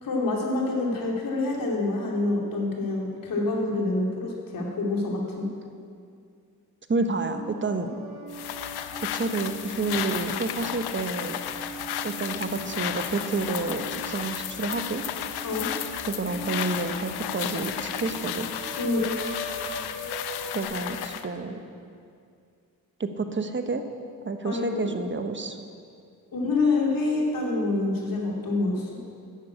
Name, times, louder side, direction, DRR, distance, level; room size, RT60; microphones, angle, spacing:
voice 1, 0.0-5.5 15.4-15.7 18.8-19.1 24.4-24.9 26.3-29.0, left 2 dB, 60° left, -2 dB, 3.0 m, -27 dB
voice 2, 6.9-7.9 9.1-11.4 12.0-15.0 16.0-18.5 20.5-21.6 23.0-23.8 24.2-25.6, right 3 dB, 30° right, 7 dB, 1.1 m, -29 dB
sound 1, 7.2-20.6, right 1 dB, 70° right, 3.4 m, -41 dB
Maquinaria Fondo, 8.3-21.3, left 11 dB, 90° left, 0.6 m, -33 dB
11.0 x 6.9 x 8.7 m, 2.3 s
cardioid pair, 70°, 38 cm